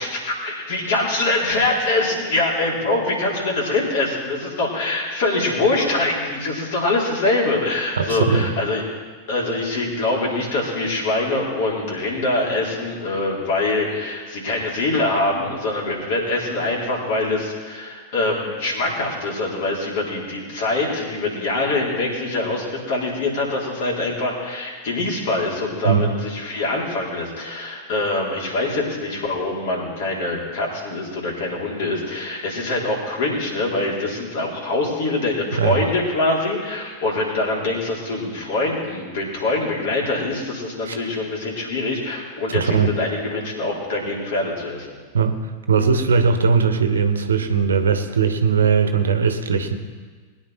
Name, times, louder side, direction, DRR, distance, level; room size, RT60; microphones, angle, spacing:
voice 1, 0.0-8.8 9.3-44.9, left 2 dB, 55° left, -3 dB, 4.1 m, -24 dB
voice 2, 8.0-8.5 25.8-26.1 35.5-35.8 40.8-40.9 42.5-42.9 45.1-49.7, right 5 dB, 70° right, 8 dB, 1.2 m, -19 dB
21.0 x 9.7 x 4.5 m, 1.5 s
figure-of-eight pair, 90°, 0 cm